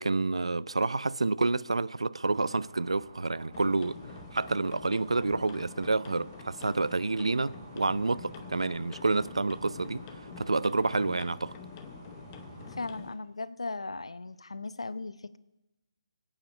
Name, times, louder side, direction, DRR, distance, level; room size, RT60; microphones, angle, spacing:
voice 1, 0.0-4.0 4.3-10.0 10.4-11.5, right 3 dB, 85° right, 0.5 m, -29 dB
sound 1, 2.2-12.8, right 3 dB, 55° right, 3.4 m, -50 dB
sound 2, 2.8-12.2, right 1 dB, ahead, 3.6 m, -62 dB
sound 3, 3.5-13.1, left 7 dB, 25° left, 0.9 m, -47 dB
voice 2, 12.7-15.4, left 3 dB, 85° left, 0.7 m, -37 dB
23.0 x 8.9 x 5.3 m
figure-of-eight pair, 150°, 3 cm